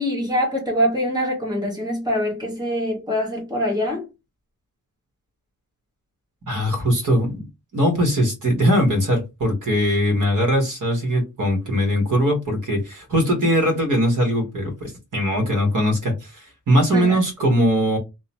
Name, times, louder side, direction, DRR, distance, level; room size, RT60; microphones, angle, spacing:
voice 1, 0.0-4.1 16.9-17.2, equal, 10° right, 1.2 m, -24 dB
voice 2, 6.5-7.5 7.7-18.0, equal, 60° right, 1.2 m, -20 dB
2.9 x 2.0 x 2.8 m
wide cardioid pair, 180°, 36 cm